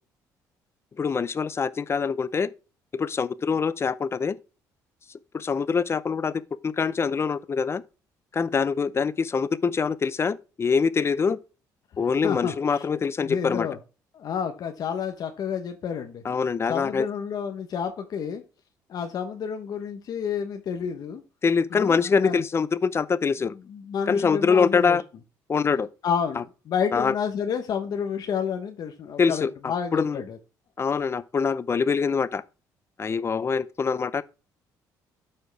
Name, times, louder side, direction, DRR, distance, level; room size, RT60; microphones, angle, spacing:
voice 1, 1.0-2.5 2.9-4.4 5.3-6.3 6.6-7.8 8.3-11.4 12.0-13.7 16.2-17.1 21.4-23.5 24.1-25.0 25.5-25.9 26.4-26.5 26.9-27.1 29.2-29.5 29.9-30.2 30.8-32.4 33.0-34.2, left 5 dB, 35° left, 0.6 m, -24 dB
voice 2, 12.0-12.9 13.2-13.8 14.1-16.2 16.7-18.4 18.9-21.2 21.7-22.4 23.5-25.0 26.0-30.4, left 7 dB, 55° left, 1.0 m, -30 dB
12.5 x 4.5 x 3.4 m
supercardioid pair, 80°, 8 cm